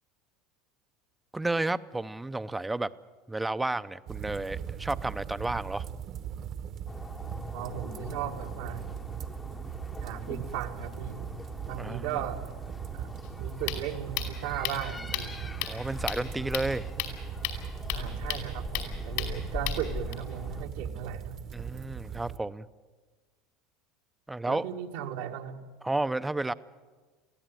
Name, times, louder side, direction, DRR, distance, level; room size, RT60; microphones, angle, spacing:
voice 1, 1.3-2.9 3.3-5.9 11.8-12.2 15.7-16.9 21.5-22.7 24.3-24.6 25.8-26.5, right 2 dB, 10° right, 14 dB, 0.7 m, -31 dB
sound 1, 4.1-22.4, right 8 dB, 45° right, 1.2 m, -39 dB
sound 2, 6.9-20.6, left 3 dB, 15° left, 1.0 m, -42 dB
voice 2, 7.5-8.9 10.0-11.3 11.7-12.4 12.9-15.3 17.9-21.4 24.5-25.6, right 9 dB, 80° right, 1 dB, 2.1 m, -37 dB
sound 3, 13.2-20.1, left 14 dB, 75° left, 5.0 m, -36 dB
23.5 x 15.5 x 9.2 m, 1.4 s
supercardioid pair, 115°, 0 cm